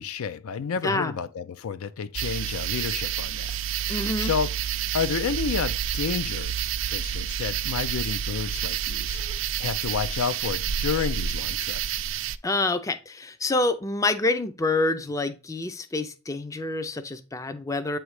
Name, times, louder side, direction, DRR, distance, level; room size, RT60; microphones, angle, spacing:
voice 1, 0.0-4.5 4.9-9.2 9.6-12.0, left 6 dB, 80° left, 0.4 m, -31 dB
voice 2, 0.8-1.2 3.9-4.3 12.4-18.0, left 2 dB, 15° left, 0.3 m, -27 dB
sound 1, 2.1-12.4, right 9 dB, 60° right, 0.4 m, -29 dB
8.0 x 3.1 x 4.7 m
head